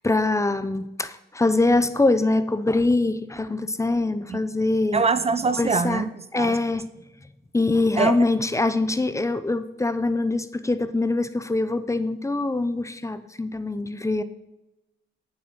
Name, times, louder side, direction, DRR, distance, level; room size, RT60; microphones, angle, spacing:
voice 1, 0.0-5.0 5.6-6.0 6.3-6.8 7.5-14.2, left 2 dB, 15° left, 13 dB, 0.7 m, -23 dB
voice 2, 4.9-6.6 8.0-8.2, right 4 dB, 30° right, 14 dB, 0.6 m, -24 dB
9.3 x 7.8 x 6.0 m, 0.96 s
cardioid pair, 90°, 20 cm